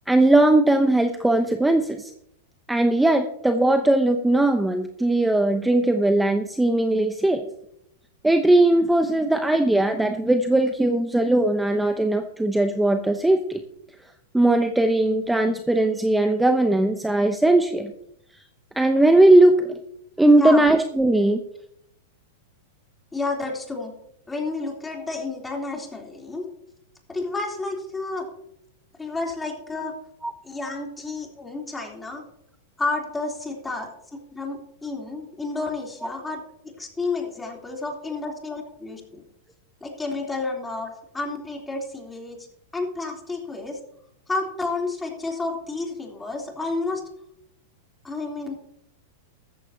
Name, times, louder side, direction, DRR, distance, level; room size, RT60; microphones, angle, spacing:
voice 1, 0.1-2.1 2.7-7.4 8.2-13.6 14.3-17.9 18.8-19.8 20.2-21.4 30.2-30.3, right 1 dB, 5° right, 7 dB, 0.9 m, -19 dB
voice 2, 23.1-23.9 24.3-26.5 27.1-28.3 29.0-29.9 30.4-32.2 32.8-39.2 39.8-42.5 42.7-43.8 44.3-47.0 48.0-48.5, left 3 dB, 10° left, 1 dB, 3.4 m, -31 dB
14.0 x 13.5 x 2.9 m, 0.73 s
hypercardioid pair, 110°, 0 cm